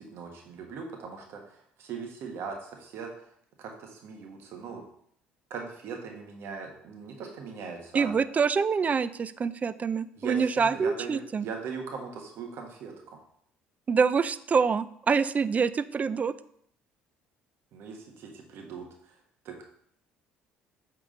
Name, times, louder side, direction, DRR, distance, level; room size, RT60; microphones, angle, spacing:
voice 1, 0.0-3.3 3.6-4.8 5.5-8.1 10.2-12.9 17.7-19.2 19.4-19.6, right 5 dB, 65° right, 2 dB, 1.4 m, -40 dB
voice 2, 7.9-11.5 13.9-16.3, right 5 dB, 35° right, 16 dB, 0.4 m, -26 dB
8.5 x 3.7 x 3.8 m, 0.67 s
supercardioid pair, 70°, 4 cm